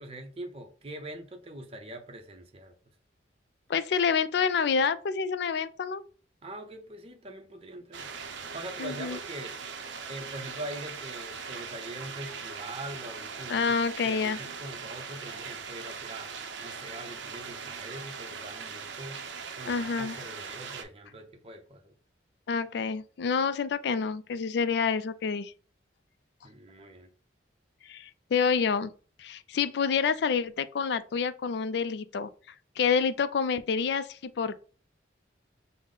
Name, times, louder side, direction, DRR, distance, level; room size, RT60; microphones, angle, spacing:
voice 1, 0.0-2.7 6.4-8.1 8.5-9.5 10.1-13.8 14.0-16.3 16.6-19.2 19.6-21.9 26.4-27.1, right 1 dB, 30° right, 0.6 m, -43 dB
voice 2, 3.7-6.0 8.8-9.2 13.5-14.4 19.7-20.2 22.5-25.5 27.8-28.9 29.2-32.3 32.8-34.5, left 6 dB, 60° left, 0.3 m, -28 dB
sound 1, 7.9-20.8, right 5 dB, 75° right, 0.5 m, -40 dB
5.4 x 2.1 x 3.8 m
head